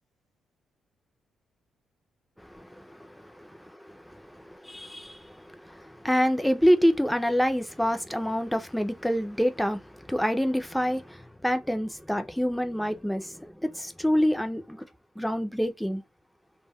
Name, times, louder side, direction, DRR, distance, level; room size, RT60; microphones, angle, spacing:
voice 1, 2.4-3.3 3.8-14.8 15.2-16.0, equal, ahead, 0.3 m, -27 dB
2.2 x 2.0 x 3.4 m
cardioid pair, 135°, 0 cm